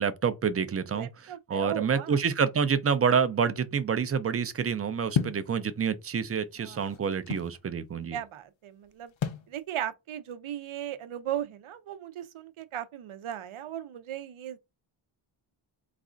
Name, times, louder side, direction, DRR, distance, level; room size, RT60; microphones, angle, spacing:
voice 1, 0.0-8.2, right 6 dB, 30° right, 0.4 m, -28 dB
voice 2, 0.9-2.2 6.6-6.8 8.1-9.1 9.5-14.6, right 11 dB, 85° right, 0.7 m, -37 dB
sound 1, 5.1-5.5 6.4-7.6 9.2-9.5, left 7 dB, 65° left, 0.7 m, -30 dB
4.1 x 2.4 x 3.7 m
wide cardioid pair, 170°, 49 cm